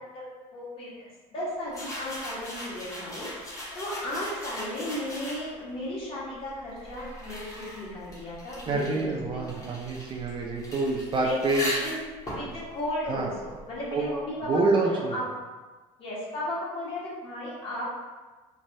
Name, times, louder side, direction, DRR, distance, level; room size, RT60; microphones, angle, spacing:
voice 1, 0.5-9.7 11.2-11.4 11.7-12.0 12.3-15.3 16.0-17.8, left 1 dB, 40° left, -7 dB, 1.2 m, -35 dB
sound 1, 1.7-5.7 6.5-13.9, equal, 25° left, 0.9 m, -39 dB
voice 2, 8.7-11.7 13.1-13.3 13.9-14.1 14.5-15.2, right 3 dB, 35° right, -1 dB, 0.4 m, -27 dB
3.2 x 2.2 x 2.6 m, 1.3 s
cardioid pair, 105°, 14 cm